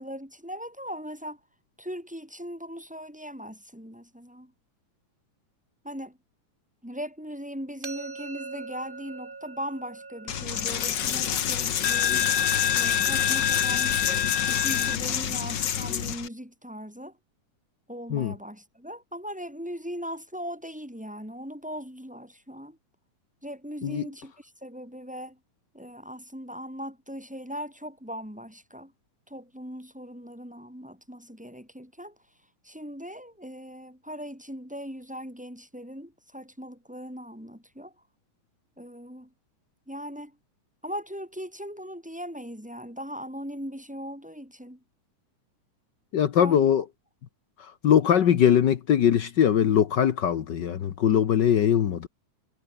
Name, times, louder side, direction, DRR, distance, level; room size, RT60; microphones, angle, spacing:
voice 1, 0.0-1.4 1.8-4.5 5.8-6.2 6.8-12.3 12.7-14.0 14.4-17.2 17.9-22.8 23.4-25.4 25.7-28.9 29.3-32.2 32.6-37.9 38.8-39.3 39.9-40.4 40.8-44.8 46.4-46.7, equal, ahead, 4.3 m, -39 dB
sound 1, 7.8-13.7, right 4 dB, 30° right, 0.9 m, -44 dB
Coin (dropping), 10.3-16.3, left 9 dB, 55° left, 1.2 m, -25 dB
voice 2, 46.1-46.8 47.6-52.1, left 9 dB, 75° left, 1.0 m, -21 dB
omnidirectional pair, 3.6 m